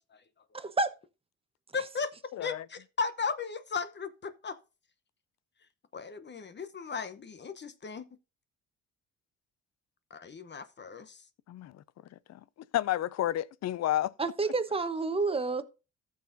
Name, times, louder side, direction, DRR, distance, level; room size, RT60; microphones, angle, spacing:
voice 1, 0.5-0.9 14.2-15.6, right 3 dB, 20° right, 1.0 m, -29 dB
voice 2, 1.7-2.1 2.4-4.6 5.9-8.1 10.1-11.2, left 5 dB, 35° left, 0.9 m, -36 dB
voice 3, 11.5-11.8 12.3-12.4 12.7-14.1, left 13 dB, 60° left, 0.5 m, -30 dB
15.0 x 6.4 x 2.7 m
cardioid pair, 90°, 30 cm